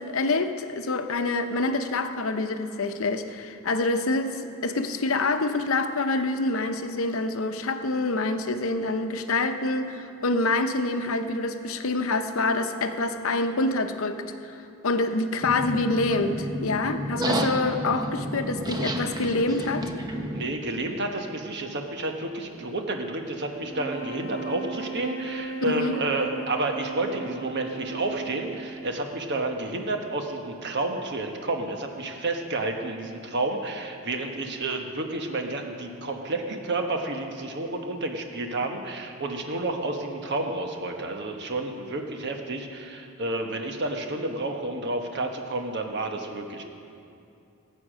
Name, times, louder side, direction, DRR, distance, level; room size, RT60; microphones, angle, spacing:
voice 1, 0.0-14.3 14.8-19.9 25.7-26.0, left 2 dB, 75° left, 7 dB, 0.8 m, -26 dB
sound 1, 15.4-20.4, right 1 dB, 20° right, 0.8 m, -30 dB
voice 2, 20.3-46.6, right 2 dB, 55° right, 4 dB, 1.2 m, -30 dB
sound 2, 23.6-29.1, right 4 dB, 30° left, 2.2 m, -37 dB
14.5 x 8.4 x 6.3 m, 2.6 s
head